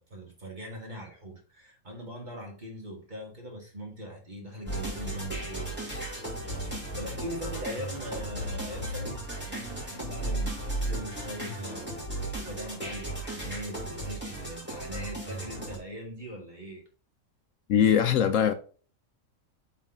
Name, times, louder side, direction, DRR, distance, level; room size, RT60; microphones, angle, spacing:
voice 1, 0.0-6.1 6.3-16.8, equal, 30° right, 2.2 m, -41 dB
sound 1, 4.7-15.8, right 1 dB, 5° right, 2.5 m, -35 dB
voice 2, 17.7-18.5, left 8 dB, 70° left, 1.0 m, -21 dB
7.2 x 4.0 x 3.8 m
omnidirectional pair, 1.5 m